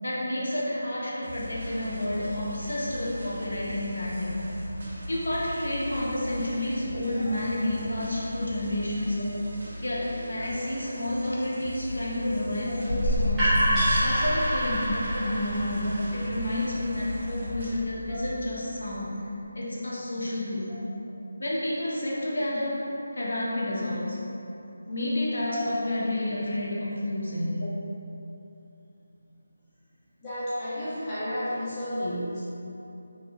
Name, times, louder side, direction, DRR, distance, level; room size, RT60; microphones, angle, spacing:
voice 1, 0.0-4.5 5.1-9.2 9.8-13.6 14.0-19.2 19.5-20.8 21.4-24.2 24.9-27.6, left 1 dB, 80° left, -6 dB, 1.2 m, -30 dB
sound 1, 1.2-17.7, equal, 50° right, 0.9 m, -39 dB
sound 2, 12.9-18.7, equal, 10° right, 1.1 m, -27 dB
voice 2, 30.2-32.4, equal, 15° left, -14 dB, 1.2 m, -32 dB
5.0 x 3.8 x 2.2 m, 2.9 s
figure-of-eight pair, 175°, 0 cm